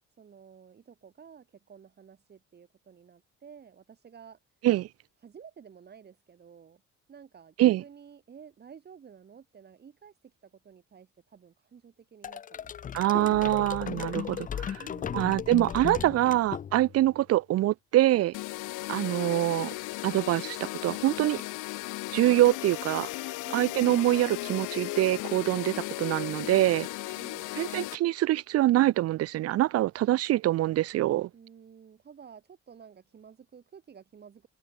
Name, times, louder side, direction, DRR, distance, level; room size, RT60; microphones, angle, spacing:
voice 1, 0.2-4.4 5.2-6.8 7.1-13.1 14.8-15.6 23.4-23.9 27.1-27.5 31.3-34.5, right 7 dB, 35° right, 3.6 m, -52 dB
sound 1, 12.2-17.1, left 8 dB, 25° left, 0.5 m, -36 dB
voice 2, 12.9-14.8 15.1-18.3 18.9-19.7 20.0-21.4 22.1-23.1 23.5-26.9 27.6-31.3, right 15 dB, 55° right, 0.5 m, -25 dB
sound 2, 18.3-28.0, left 20 dB, 85° left, 0.5 m, -36 dB
cardioid pair, 160°, 30 cm